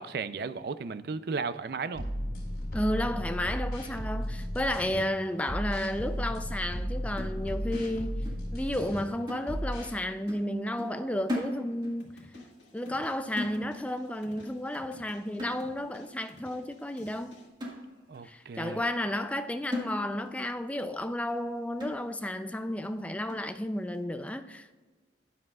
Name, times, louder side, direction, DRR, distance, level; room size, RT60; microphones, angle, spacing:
voice 1, 0.0-2.1 18.1-18.8, right 4 dB, 55° right, 0.4 m, -35 dB
sound 1, 1.9-5.0 5.4-9.0 9.4-9.9, equal, 50° left, 3.1 m, -34 dB
voice 2, 2.7-8.3 8.5-12.2 12.7-17.4 18.2-24.7, left 1 dB, 5° left, 0.4 m, -32 dB
sound 2, 7.2-8.5 8.8-9.0 9.3-10.0 10.3-10.5 10.8-12.0 12.3-12.6 12.9-13.1 13.4-14.0 14.4-14.6 14.9-15.1 15.4-16.0 16.5-16.6 17.1-17.2 17.6-18.3 18.7-18.8 19.2-19.4 19.7-20.4 20.8-20.9 21.3-21.4 21.8-22.3 22.8-22.9 23.3-23.5, left 1 dB, 25° right, 1.7 m, -38 dB
sound 3, 12.0-17.5, left 1 dB, 85° left, 1.9 m, -55 dB
12.5 x 9.8 x 2.4 m
head